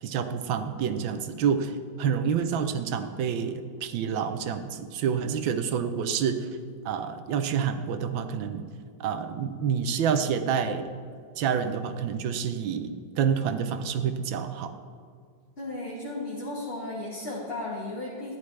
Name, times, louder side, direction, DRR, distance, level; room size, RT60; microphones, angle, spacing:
voice 1, 0.0-6.5 6.8-8.7 9.0-10.9 11.4-14.7, right 7 dB, 75° right, 9 dB, 1.4 m, -28 dB
voice 2, 15.6-18.3, left 2 dB, 35° left, -5 dB, 1.4 m, -35 dB
13.5 x 10.0 x 3.3 m, 2.2 s
omnidirectional pair, 2.2 m